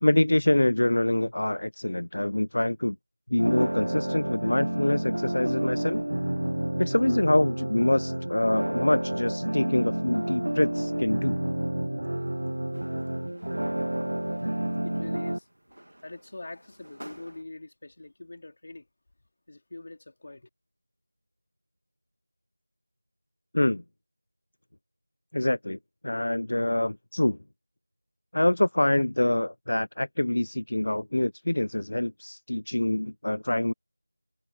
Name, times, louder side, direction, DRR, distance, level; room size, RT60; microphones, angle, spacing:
voice 1, 0.0-3.0 3.3-6.0 6.8-11.4 23.5-23.8 25.3-25.8 26.0-27.4 28.3-33.7, left 1 dB, 60° left, 0.6 m, -25 dB
sound 1, 3.4-15.4, right 1 dB, 70° right, 0.3 m, -29 dB
sound 2, 12.0-17.4, right 1 dB, 85° right, 2.1 m, -52 dB
voice 2, 14.8-15.5 16.0-18.9 19.5-20.5, left 2 dB, 35° left, 4.3 m, -43 dB
figure-of-eight pair, 175°, 0 cm